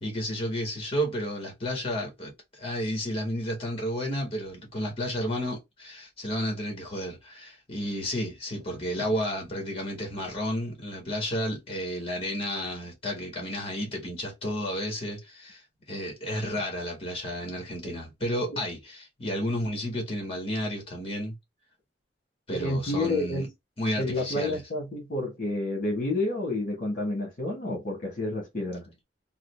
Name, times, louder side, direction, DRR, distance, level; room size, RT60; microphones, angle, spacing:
voice 1, 0.0-15.6 15.9-21.3 22.5-23.5 23.8-24.6, equal, 35° left, 1.6 m, -32 dB
voice 2, 22.5-23.4 23.9-28.9, left 2 dB, 50° left, 1.4 m, -29 dB
3.8 x 2.2 x 3.3 m
head